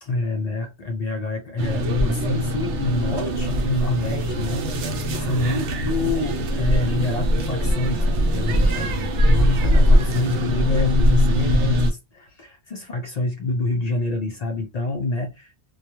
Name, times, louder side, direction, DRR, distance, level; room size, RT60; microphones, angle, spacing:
voice 1, 0.0-8.0 8.3-15.5, left 2 dB, 60° left, 0.4 m, -27 dB
sound 1, 1.6-11.9, equal, 85° right, 0.9 m, -21 dB
2.3 x 2.2 x 2.9 m
omnidirectional pair, 1.1 m